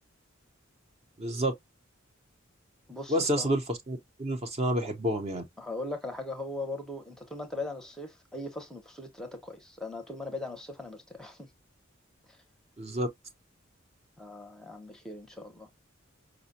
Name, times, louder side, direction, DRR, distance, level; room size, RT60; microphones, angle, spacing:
voice 1, 1.2-1.5 3.1-5.4 12.8-13.1, equal, 30° right, 0.7 m, -29 dB
voice 2, 2.9-3.5 5.6-11.5 14.2-15.8, left 2 dB, 5° left, 0.7 m, -39 dB
5.0 x 2.2 x 2.6 m
head